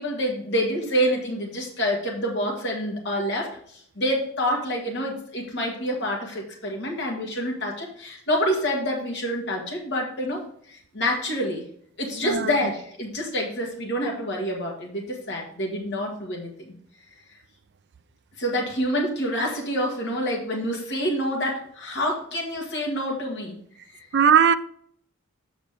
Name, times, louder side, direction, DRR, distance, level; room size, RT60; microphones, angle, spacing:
voice 1, 0.0-10.4 10.7-11.6 12.0-16.5 18.4-23.5, equal, 55° left, 1.7 m, -27 dB
voice 2, 12.2-12.7 24.1-24.6, right 7 dB, 50° right, 0.4 m, -19 dB
8.1 x 6.1 x 3.4 m
head